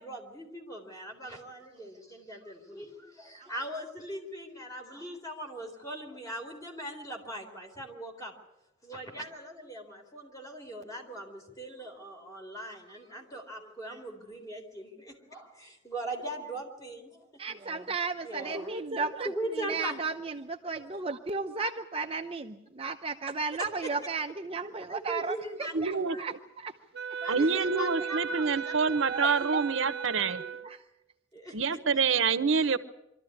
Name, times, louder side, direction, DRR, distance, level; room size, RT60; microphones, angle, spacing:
voice 1, 0.0-8.3 8.8-17.2 18.2-18.7 19.2-20.0 20.6-20.7 21.6-21.7 24.9-26.2 27.2-29.0 30.4-30.6 31.3-31.6, right 1 dB, 20° left, 2 dB, 3.9 m, -40 dB
voice 2, 17.4-26.7 27.1-27.5 28.0-28.1 29.0-29.7 30.6-30.8 31.5-31.6, right 4 dB, 30° right, 4 dB, 0.8 m, -35 dB
voice 3, 25.7-26.2 27.3-30.4 31.5-32.8, right 5 dB, 85° right, 11 dB, 1.0 m, -27 dB
Wind instrument woodwind instrument, 26.9-30.8, right 7 dB, 60° right, 0.9 m, -36 dB
24.5 x 13.5 x 9.7 m, 0.90 s
head